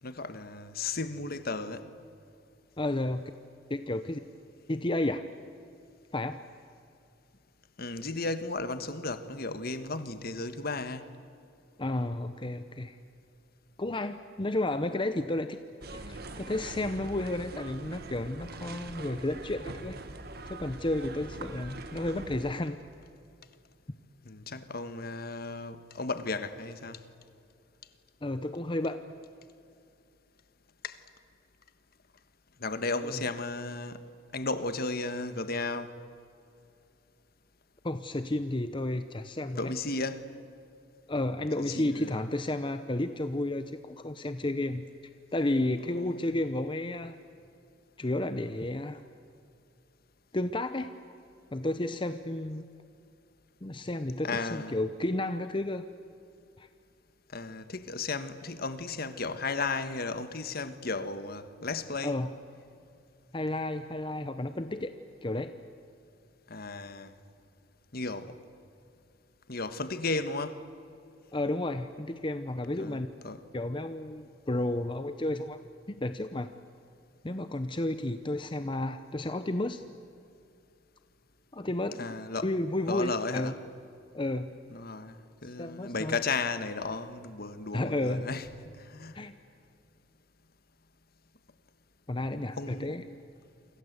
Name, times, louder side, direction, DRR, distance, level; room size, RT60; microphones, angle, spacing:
voice 1, 0.0-1.9 7.8-11.1 24.2-27.0 30.8-31.0 32.6-34.0 34.3-36.0 39.6-40.3 41.7-42.1 45.9-46.3 54.2-54.8 57.3-62.2 66.5-67.1 67.9-68.4 69.5-70.6 72.8-73.4 82.0-82.5 82.9-83.5 84.7-89.3 92.6-93.0, left 3 dB, 50° left, 1.5 m, -34 dB
voice 2, 2.8-3.3 3.7-4.2 4.7-5.2 6.1-6.4 11.8-13.0 13.8-15.6 15.9-20.0 20.5-22.8 28.2-29.0 33.0-33.2 37.8-39.7 41.1-44.8 45.3-47.2 48.0-49.0 50.3-50.9 51.5-52.6 53.6-55.8 56.6-56.7 62.0-62.3 63.3-65.0 65.2-65.5 71.3-73.1 73.5-75.6 75.9-76.5 77.2-79.8 81.5-82.1 82.4-83.5 84.1-84.5 85.6-86.2 87.7-88.3 89.1-89.4 92.1-93.0, left 1 dB, 25° left, 0.8 m, -32 dB
sound 1, 15.8-22.5, right 2 dB, 55° right, 1.7 m, -43 dB
28.5 x 25.5 x 8.1 m
head